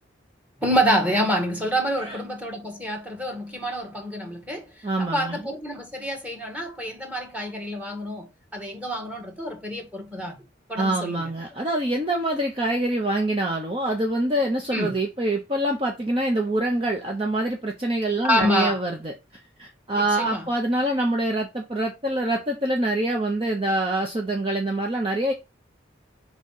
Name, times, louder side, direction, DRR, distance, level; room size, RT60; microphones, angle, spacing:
voice 1, 0.6-10.4 10.7-11.3 14.7-15.0 18.2-18.8 19.9-20.5, equal, 5° right, 1.7 m, -27 dB
voice 2, 4.8-5.4 10.8-19.1 19.6-25.3, right 1 dB, 30° right, 0.8 m, -25 dB
4.9 x 4.0 x 5.5 m
head